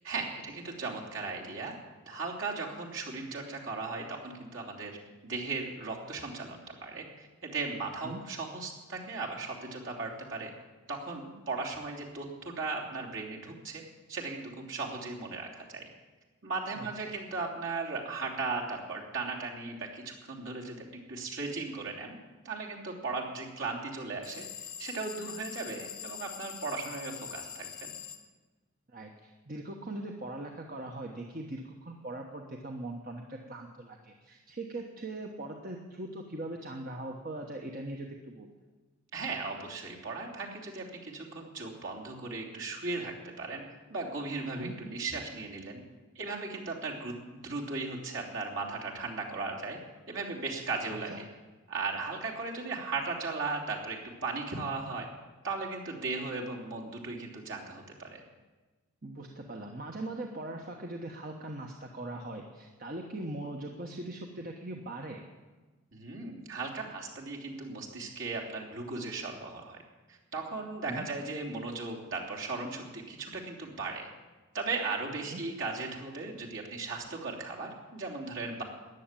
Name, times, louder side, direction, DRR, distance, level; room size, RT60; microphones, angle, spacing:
voice 1, 0.0-1.7 2.0-5.0 5.2-10.5 10.9-13.8 14.1-15.9 16.4-22.2 22.4-27.9 39.1-43.6 43.9-45.8 46.1-49.8 50.1-51.3 51.7-55.1 55.4-58.2 65.9-69.8 70.1-74.1 74.5-78.6, right 3 dB, 60° right, -2 dB, 3.2 m, -37 dB
voice 2, 16.7-17.1 28.9-38.5 44.5-44.7 51.1-51.2 59.0-65.2 70.9-71.1 75.3-75.4, right 2 dB, 40° right, 2 dB, 1.2 m, -40 dB
sound 1, 24.2-28.2, left 9 dB, 75° left, 1.4 m, -44 dB
14.5 x 10.5 x 9.0 m, 1.3 s
head